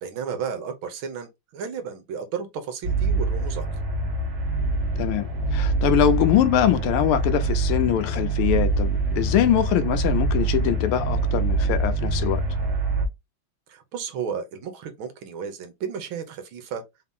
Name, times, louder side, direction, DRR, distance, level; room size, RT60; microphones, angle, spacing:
voice 1, 0.0-3.7 13.7-16.8, right 6 dB, 75° right, 1.7 m, -33 dB
sound 1, 2.8-13.1, right 3 dB, 35° right, 1.5 m, -25 dB
voice 2, 5.5-12.4, left 10 dB, 85° left, 1.5 m, -23 dB
4.0 x 2.8 x 3.5 m
omnidirectional pair, 2.3 m